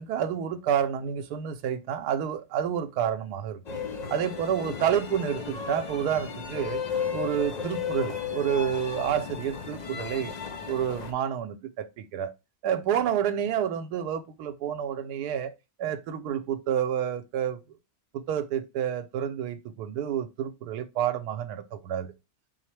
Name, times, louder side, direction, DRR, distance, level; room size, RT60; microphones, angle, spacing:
voice 1, 0.0-3.6 4.1-6.8 7.1-10.3 10.7-12.3 12.6-15.5 15.8-17.6 18.1-22.1, right 9 dB, 90° right, 1.1 m, -29 dB
sound 1, 3.7-11.1, left 6 dB, 90° left, 0.3 m, -34 dB
4.2 x 3.9 x 3.2 m
omnidirectional pair, 1.6 m